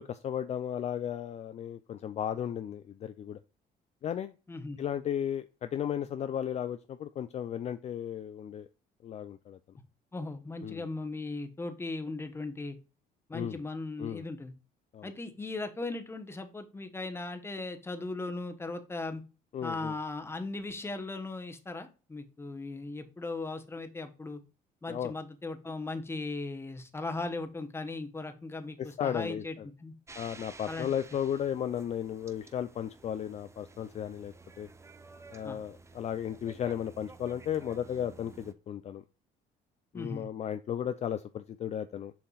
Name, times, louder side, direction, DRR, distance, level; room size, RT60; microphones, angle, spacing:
voice 1, 0.0-3.4 4.0-4.3 4.8-8.7 9.0-9.6 10.6-10.8 13.3-13.6 14.0-14.2 14.9-15.1 19.5-19.9 24.9-25.1 28.8-29.7 30.1-34.7 35.3-39.0 39.9-42.1, left 9 dB, 40° left, 0.4 m, -35 dB
voice 2, 10.1-12.8 13.3-14.5 15.0-19.2 19.6-24.4 24.8-29.9 30.7-30.9 35.4-35.6 39.9-40.3, left 3 dB, 15° left, 1.0 m, -38 dB
sound 1, 30.1-38.5, right 3 dB, 15° right, 0.7 m, -52 dB
6.8 x 5.8 x 2.4 m
cardioid pair, 110°, 17 cm